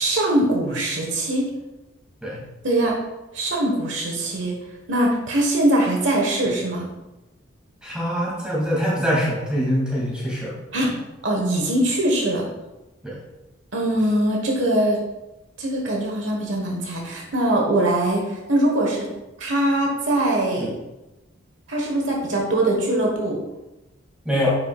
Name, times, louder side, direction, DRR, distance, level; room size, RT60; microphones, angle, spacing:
voice 1, 0.0-1.4 2.6-3.0 3.3-4.5 4.9-6.9 10.7-10.9 11.2-12.4 13.7-15.0 15.6-19.1 19.4-20.7 21.7-23.4, right 1 dB, 60° right, -1 dB, 1.4 m, -22 dB
voice 2, 7.8-10.5 10.8-10.9 13.0-13.2 20.6-20.7 24.2-24.5, equal, 5° right, -6 dB, 2.5 m, -24 dB
9.2 x 6.7 x 2.4 m, 1.0 s
head